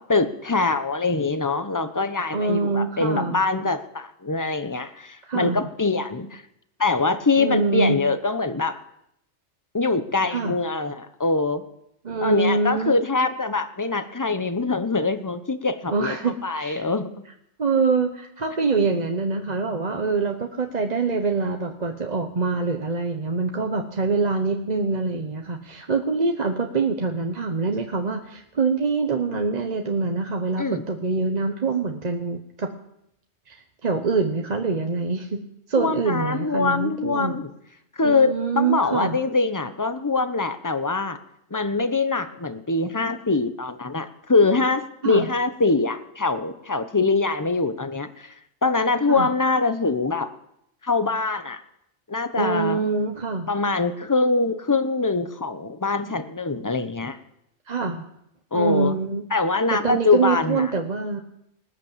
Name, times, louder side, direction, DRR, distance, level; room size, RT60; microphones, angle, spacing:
voice 1, 0.0-6.4 6.8-8.8 9.7-11.6 12.2-17.1 30.6-30.8 35.8-37.5 38.0-41.2 41.5-48.3 48.6-50.3 50.8-51.6 52.1-52.8 53.5-57.2 58.5-59.0 59.3-60.7, left 3 dB, 20° left, 10 dB, 0.8 m, -23 dB
voice 2, 2.3-3.4 5.2-5.6 7.4-8.0 10.3-10.5 12.0-13.0 15.9-16.9 17.6-32.7 33.5-35.4 35.7-37.4 38.0-39.2 45.0-45.3 49.1-49.3 52.4-53.5 57.7-58.0 58.5-59.2 59.7-61.2, right 4 dB, 40° right, 4 dB, 1.0 m, -25 dB
19.5 x 8.3 x 7.3 m, 0.78 s
omnidirectional pair, 1.3 m